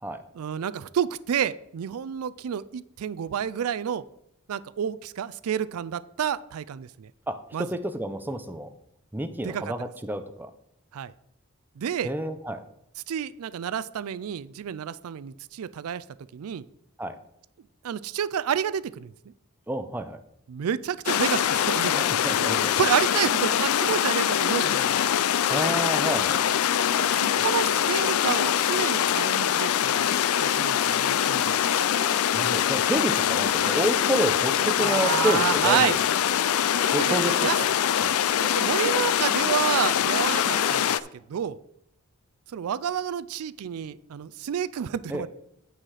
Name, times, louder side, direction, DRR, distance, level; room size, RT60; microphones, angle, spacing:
voice 1, 0.3-4.0 4.5-7.1 7.5-7.7 9.4-9.6 10.9-11.1 11.8-12.1 13.1-16.0 16.3-16.6 17.8-19.1 20.5-22.1 22.7-25.0 27.0-30.1 30.3-31.6 34.8-36.0 36.8-37.6 38.4-41.0 41.3-41.6 42.5-45.3, right 8 dB, 85° right, 17 dB, 0.4 m, -29 dB
voice 2, 7.3-8.7 9.1-10.5 12.0-12.6 17.0-17.1 19.7-20.2 21.9-22.7 25.5-26.4 32.3-36.0 36.9-37.7 38.0-38.1 45.1-45.2, right 1 dB, 10° right, 8 dB, 0.5 m, -29 dB
sound 1, 21.1-41.0, left 9 dB, 80° left, 0.4 m, -23 dB
9.0 x 5.7 x 4.8 m, 0.77 s
head